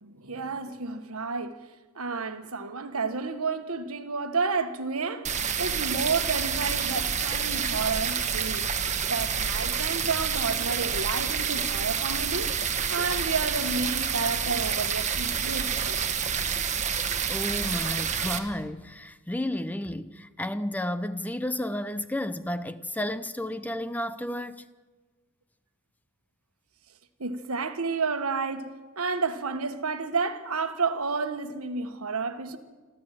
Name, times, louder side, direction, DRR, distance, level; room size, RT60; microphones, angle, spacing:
voice 1, 0.0-1.6 1.9-8.7 9.1-12.6 12.9-16.1 27.2-32.6, right 4 dB, 75° right, 1.4 m, -31 dB
sound 1, 5.2-18.4, right 7 dB, 35° right, 1.4 m, -28 dB
voice 2, 17.3-24.6, left 1 dB, 5° left, 0.5 m, -32 dB
27.0 x 13.0 x 7.6 m
head